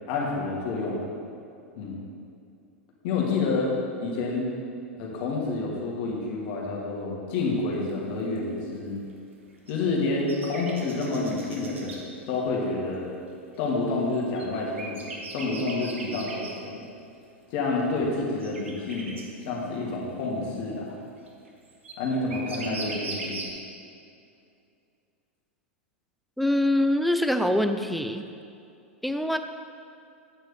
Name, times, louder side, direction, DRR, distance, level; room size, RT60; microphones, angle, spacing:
voice 1, 0.1-1.1 1.8-2.0 3.0-3.7 4.0-4.5 5.0-9.0 9.7-13.1 13.6-16.8 17.5-19.1 19.4-20.9 22.0-23.4, left 3 dB, 50° left, -3 dB, 2.2 m, -29 dB
sound 1, 7.7-7.8 8.4-8.5 9.5-12.0 13.6-16.5 17.8-17.9 18.4-19.2 21.3-23.5, right 3 dB, 70° right, 1.4 m, -39 dB
voice 2, 26.4-28.2 29.0-29.4, left 1 dB, ahead, 7 dB, 0.5 m, -24 dB
10.0 x 8.8 x 3.4 m, 2.5 s
figure-of-eight pair, 90°, 7 cm